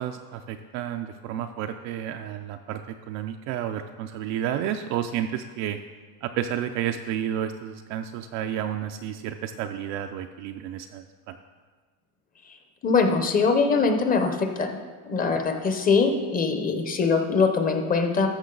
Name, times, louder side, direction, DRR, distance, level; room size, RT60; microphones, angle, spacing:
voice 1, 0.0-5.8 6.2-11.4, right 10 dB, 40° right, 6 dB, 0.4 m, -31 dB
voice 2, 12.8-14.7 15.1-18.3, left 4 dB, 20° left, 6 dB, 0.8 m, -22 dB
13.5 x 6.3 x 3.9 m, 1.5 s
supercardioid pair, 135°, 45 cm